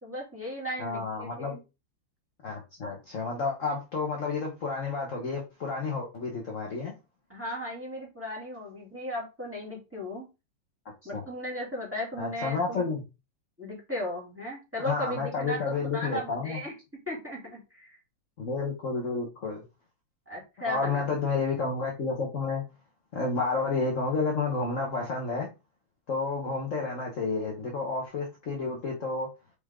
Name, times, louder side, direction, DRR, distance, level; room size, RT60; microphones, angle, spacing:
voice 1, 0.0-1.6 7.3-10.3 11.0-12.8 13.6-18.0 20.3-21.0, left 1 dB, 5° right, -4 dB, 3.0 m, -36 dB
voice 2, 0.8-1.6 2.4-6.9 11.1-11.2 12.2-13.0 14.8-16.6 18.4-19.6 20.7-22.6 23.1-25.5 26.1-29.3, left 4 dB, 45° left, 0 dB, 1.4 m, -30 dB
5.1 x 5.0 x 3.6 m, 0.27 s
omnidirectional pair, 2.2 m